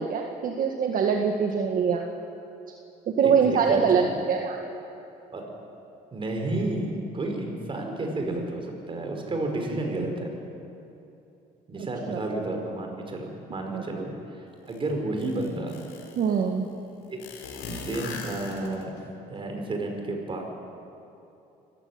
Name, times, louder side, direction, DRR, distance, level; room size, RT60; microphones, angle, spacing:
voice 1, 0.0-2.0 3.1-4.0 4.3-4.6 12.1-12.2 13.7-13.8 16.2-16.7, right 6 dB, 55° right, 2 dB, 1.8 m, -23 dB
voice 2, 3.2-4.1 5.3-5.4 6.1-10.3 11.7-15.8 17.1-17.2 17.9-18.9 19.3-20.5, right 2 dB, 30° right, 2 dB, 5.3 m, -31 dB
sound 1, 14.7-14.8 15.2-16.3 17.2-19.0, left 3 dB, 85° left, 4.3 m, -38 dB
25.0 x 15.0 x 9.6 m, 2.8 s
cardioid pair, 110°, 17 cm